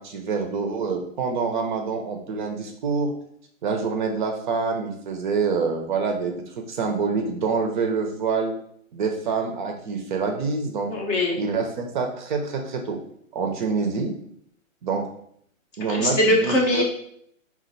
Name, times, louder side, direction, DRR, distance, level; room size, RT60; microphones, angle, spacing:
voice 1, 0.0-3.1 3.6-8.5 8.9-10.9 11.4-13.0 13.3-14.1 14.8-15.1 15.8-16.8, right 4 dB, 35° right, 4 dB, 0.6 m, -26 dB
voice 2, 10.8-11.4 15.9-16.8, left 1 dB, 20° left, -1 dB, 0.6 m, -21 dB
4.3 x 2.5 x 3.9 m, 0.68 s
hypercardioid pair, 135°, 41 cm